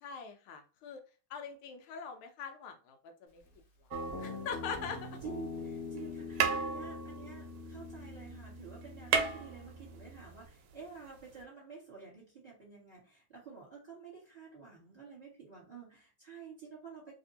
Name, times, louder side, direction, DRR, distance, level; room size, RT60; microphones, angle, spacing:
voice 1, 0.0-1.0 1.3-3.4 4.2-5.1, left 6 dB, 80° left, 5 dB, 1.4 m, -42 dB
Guitar, 3.9-10.5, left 3 dB, 55° left, 1.0 m, -44 dB
sound 1, 3.9-5.1 6.0-6.1 6.3-8.2 8.5-8.6 8.8-10.2 11.4-11.5, right 6 dB, 80° right, 1.4 m, -34 dB
voice 2, 4.8-17.1, right 6 dB, 20° right, -5 dB, 1.6 m, -50 dB
3.3 x 2.8 x 2.7 m, 0.35 s
omnidirectional pair, 2.4 m